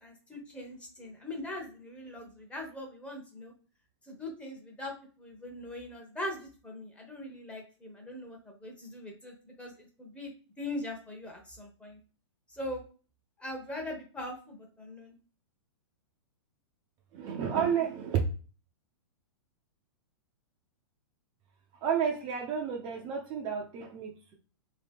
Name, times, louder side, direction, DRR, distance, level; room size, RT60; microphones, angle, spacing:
voice 1, 0.0-3.5 4.1-4.9 5.2-10.3 10.6-12.0 12.5-12.8 13.4-15.2, left 1 dB, 10° left, 1 dB, 0.9 m, -41 dB
voice 2, 17.1-18.2 21.8-24.3, right 7 dB, 30° right, 2 dB, 0.5 m, -31 dB
2.9 x 2.8 x 3.4 m, 0.38 s
hypercardioid pair, 140°, 15 cm